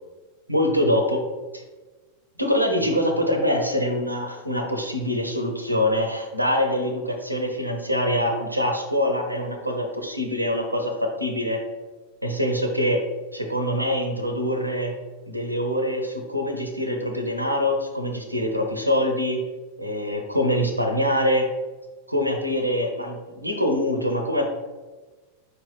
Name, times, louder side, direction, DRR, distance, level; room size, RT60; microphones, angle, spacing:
voice 1, 0.5-1.2 1.5-1.6 2.4-11.6 12.2-13.0 13.3-14.9 15.3-19.4 19.8-21.5 22.1-24.5, left 1 dB, 85° right, 4 dB, 0.5 m, -24 dB
4.9 x 3.0 x 3.1 m, 1.3 s
figure-of-eight pair, 90°, 0 cm